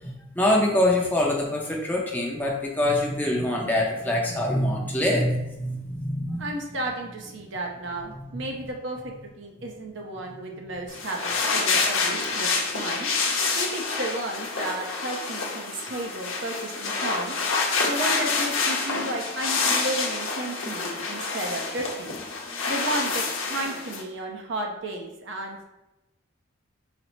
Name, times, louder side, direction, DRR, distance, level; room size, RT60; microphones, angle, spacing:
voice 1, 0.0-6.5 7.4-7.5 8.3-8.4, left 1 dB, 10° left, -2 dB, 0.5 m, -25 dB
voice 2, 6.4-13.1 13.5-17.3 17.8-22.2 22.7-25.6, right 1 dB, 65° right, 1 dB, 0.6 m, -33 dB
sound 1, 10.9-24.0, left 4 dB, 80° left, 0.7 m, -27 dB
4.1 x 2.0 x 4.3 m, 0.95 s
head